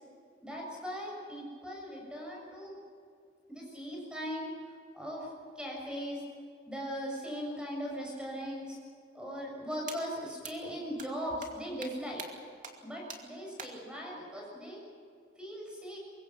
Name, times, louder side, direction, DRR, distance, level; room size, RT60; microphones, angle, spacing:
voice 1, 0.4-2.8 3.5-4.5 4.9-6.2 6.7-8.8 9.1-12.4 12.8-14.8 15.4-16.0, equal, 5° right, -2 dB, 7.1 m, -39 dB
sound 1, 9.9-10.0 10.4-10.5 11.0-11.1 11.4-11.5 11.8-11.9 12.2-12.3 12.6-12.7 13.1-13.2 13.6-13.7, right 5 dB, 45° right, 2.6 m, -42 dB
24.5 x 22.5 x 6.1 m, 2.3 s
head